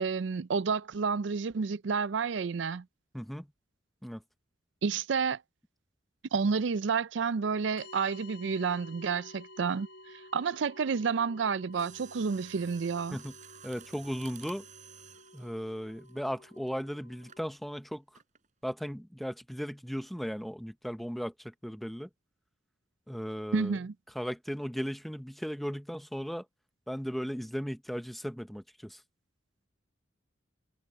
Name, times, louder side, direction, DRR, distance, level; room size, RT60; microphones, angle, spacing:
voice 1, 0.0-2.8 4.8-5.4 6.3-9.9 10.3-13.2 23.5-23.9, right 5 dB, 70° right, 0.5 m, -30 dB
voice 2, 3.1-3.5 4.0-4.2 13.1-13.3 13.6-14.7 15.3-18.0 18.6-22.1 23.1-23.8 24.1-26.5 26.9-29.0, equal, ahead, 0.9 m, -36 dB
sound 1, 7.8-17.4, left 2 dB, 70° left, 4.5 m, -53 dB
Mechanisms, 11.7-16.7 17.3-17.5 18.1-18.5 18.8-18.9, right 8 dB, 40° right, 4.4 m, -53 dB
head